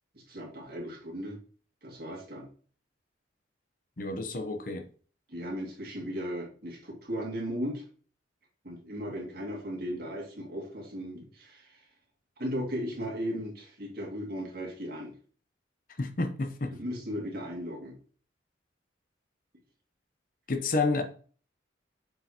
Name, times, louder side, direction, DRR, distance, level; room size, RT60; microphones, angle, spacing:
voice 1, 0.1-1.4 1.8-2.5 5.3-7.8 8.6-11.8 12.4-15.1 16.7-18.0, equal, 55° right, 2.2 m, -36 dB
voice 2, 4.0-4.8 16.0-16.7 20.5-21.0, left 3 dB, 50° left, 0.8 m, -30 dB
7.4 x 4.7 x 2.9 m
head